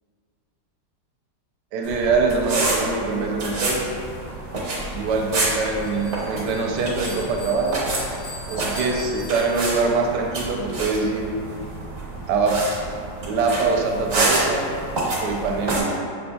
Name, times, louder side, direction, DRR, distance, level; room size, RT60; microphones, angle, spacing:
voice 1, 1.7-3.8 4.9-7.9 8.5-11.3 12.3-12.6 13.3-14.7 15.2-15.9, right 4 dB, 80° right, 1 dB, 1.2 m, -23 dB
sound 1, 1.8-15.8, right 2 dB, 60° right, 1.2 m, -28 dB
Bell, 5.7-9.9, left 2 dB, 65° left, 1.8 m, -42 dB
6.5 x 2.6 x 2.2 m, 2.4 s
omnidirectional pair, 1.8 m